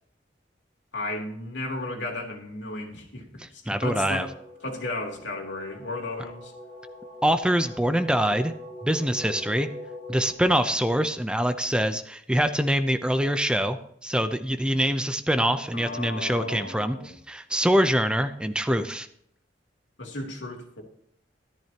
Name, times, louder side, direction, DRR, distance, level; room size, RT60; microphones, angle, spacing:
voice 1, 0.9-4.3 4.6-6.5 15.7-17.1 20.0-20.8, left 2 dB, 80° left, 1 dB, 3.3 m, -34 dB
voice 2, 3.4-4.3 7.2-8.5 8.8-9.7 10.1-19.1, equal, 5° right, 9 dB, 0.7 m, -24 dB
sound 1, 4.1-10.3, left 1 dB, 30° right, 4.1 m, -43 dB
14.0 x 14.0 x 2.9 m, 0.67 s
head